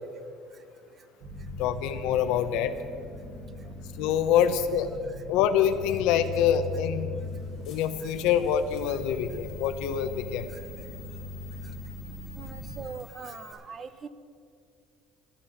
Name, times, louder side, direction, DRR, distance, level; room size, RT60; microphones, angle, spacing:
sound 1, 1.2-12.8, left 2 dB, 90° right, 3.5 m, -40 dB
voice 1, 1.6-2.7 4.0-4.9 5.3-7.1 7.7-10.5, left 9 dB, 75° left, 9 dB, 0.8 m, -25 dB
sound 2, 7.2-13.5, left 9 dB, 45° left, 4.1 m, -51 dB
voice 2, 12.4-14.1, right 5 dB, 25° right, 13 dB, 0.6 m, -41 dB
13.0 x 11.5 x 7.2 m, 2.4 s
cardioid pair, 170°, 0 cm